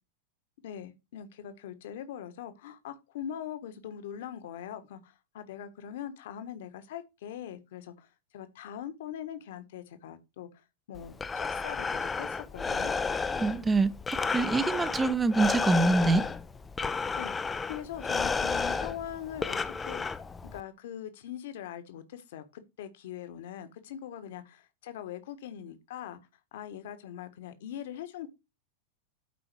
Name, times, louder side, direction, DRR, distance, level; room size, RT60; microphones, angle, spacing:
voice 1, 0.6-8.1 8.3-10.6 10.9-12.9 17.2-17.3 17.6-20.2 20.5-26.2 26.5-28.3, left 10 dB, 55° left, 1.5 m, -42 dB
Breathing, 11.0-20.6, left 4 dB, 15° left, 0.5 m, -32 dB
voice 2, 13.3-16.3, right 3 dB, 15° right, 0.8 m, -25 dB
8.5 x 4.9 x 4.6 m
figure-of-eight pair, 90°, 0 cm